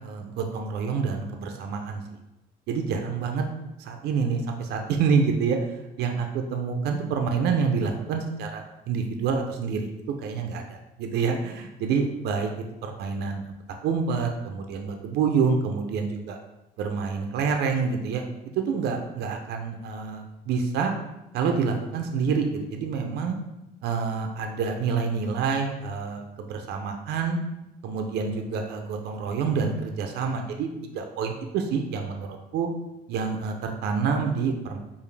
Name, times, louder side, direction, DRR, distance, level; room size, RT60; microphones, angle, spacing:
voice 1, 0.0-2.0 2.7-3.4 3.8-5.6 6.0-9.9 10.2-13.4 13.8-16.4 16.8-18.2 18.6-20.9 21.3-23.4 23.8-27.4 27.8-30.7 30.9-32.7 33.1-34.8, right 5 dB, 75° right, 4 dB, 0.5 m, -27 dB
4.8 x 2.6 x 3.2 m, 0.92 s
cardioid pair, 110°, 17 cm